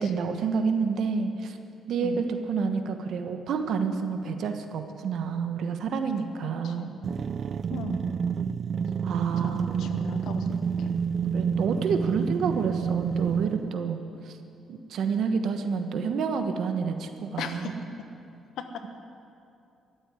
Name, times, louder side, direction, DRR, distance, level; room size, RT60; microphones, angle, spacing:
voice 1, 0.0-1.6 1.9-6.9 9.0-9.9 11.3-14.4 14.7-17.8, right 5 dB, 70° right, 7 dB, 1.2 m, -29 dB
voice 2, 6.4-6.9 7.7-8.0 9.4-10.9 17.4-17.7 18.6-18.7, left 6 dB, 80° left, 7 dB, 1.2 m, -37 dB
sound 1, 7.0-13.8, right 6 dB, 55° right, 0.3 m, -29 dB
14.5 x 8.0 x 9.6 m, 2.6 s
cardioid pair, 90°, 0 cm